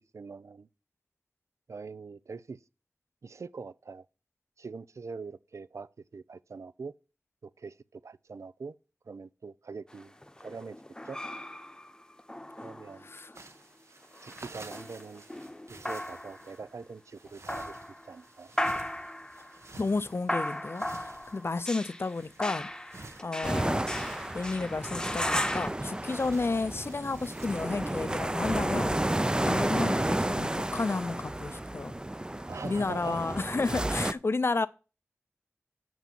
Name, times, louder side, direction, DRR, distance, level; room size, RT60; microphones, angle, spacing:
voice 1, 0.1-0.7 1.7-2.6 3.2-4.1 4.6-6.9 7.4-8.8 9.1-10.1 10.4-10.8 11.0-11.2 12.6-13.1 14.2-15.2 15.7-17.7 18.0-18.5 32.5-33.3, right 4 dB, 85° right, 0.5 m, -43 dB
sound 1, 9.9-13.4 14.0-16.6 17.3-18.1 18.6-25.7, left 1 dB, 15° left, 0.9 m, -36 dB
voice 2, 13.0-13.3 19.8-22.7 23.2-23.9 24.3-29.0 29.4-31.9 32.6-34.7, left 3 dB, 55° left, 0.5 m, -32 dB
sound 2, 13.3-27.7, right 2 dB, 65° right, 1.4 m, -52 dB
sound 3, 23.4-34.1, right 1 dB, 15° right, 0.5 m, -32 dB
7.0 x 6.1 x 7.4 m
wide cardioid pair, 65°, 5 cm